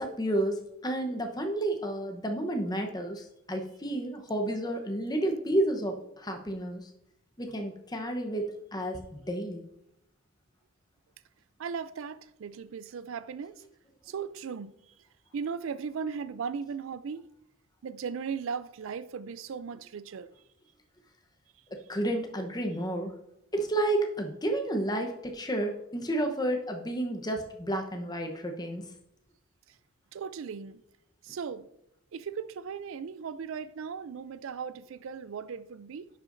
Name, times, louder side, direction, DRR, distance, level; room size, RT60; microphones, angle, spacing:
voice 1, 0.0-6.9 7.4-9.6 21.7-23.1 23.5-28.9, right 1 dB, 20° left, 0.9 m, -31 dB
voice 2, 11.6-13.6 14.1-14.7 15.3-17.3 17.8-20.3 30.1-30.8 31.2-31.7 32.1-36.1, right 6 dB, 60° right, 0.4 m, -37 dB
10.5 x 7.6 x 2.6 m
head